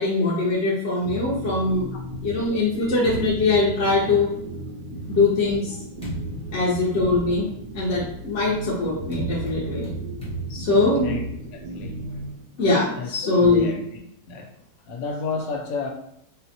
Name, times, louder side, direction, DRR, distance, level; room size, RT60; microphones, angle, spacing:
voice 1, 0.0-1.9 2.2-4.3 5.1-5.8 6.5-9.9 10.5-11.1 12.6-13.7, left 3 dB, 55° left, -6 dB, 0.9 m, -22 dB
sound 1, 1.0-12.9, right 1 dB, 70° right, 0.9 m, -36 dB
sound 2, 2.0-4.5 5.2-12.3, right 2 dB, 10° left, 0.4 m, -37 dB
voice 2, 11.5-12.0 13.0-13.8 14.3-14.5 14.9-15.9, left 4 dB, 80° left, 2 dB, 1.2 m, -31 dB
4.1 x 2.1 x 2.7 m, 0.75 s
omnidirectional pair, 1.9 m